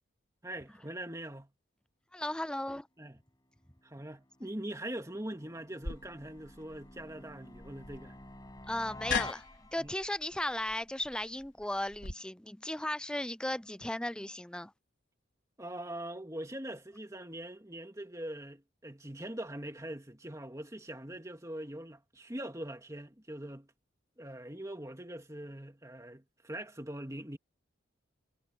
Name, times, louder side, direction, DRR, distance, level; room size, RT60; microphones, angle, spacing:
voice 1, 0.4-1.5 3.0-3.2 3.8-8.1 9.8-9.9 15.6-23.7 24.2-27.4, right 1 dB, 15° right, 2.5 m, -42 dB
voice 2, 2.1-2.9 8.7-9.4 9.7-14.7, left 1 dB, 5° left, 0.4 m, -36 dB
sound 1, 3.6-10.1, left 2 dB, 20° left, 7.3 m, -50 dB
sound 2, 5.8-12.1, left 5 dB, 75° left, 4.4 m, -41 dB
head